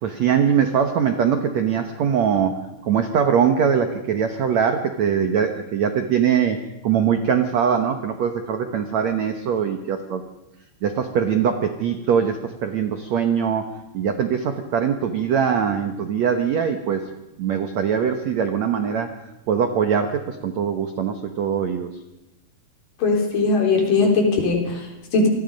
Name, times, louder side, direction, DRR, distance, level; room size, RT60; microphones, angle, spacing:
voice 1, 0.0-10.2 10.8-13.7 13.9-17.1 17.4-19.1 19.5-21.9, right 7 dB, 65° right, 6 dB, 1.8 m, -22 dB
voice 2, 23.0-25.3, left 3 dB, 55° left, 2 dB, 5.1 m, -20 dB
27.5 x 20.5 x 5.3 m, 0.99 s
omnidirectional pair, 4.8 m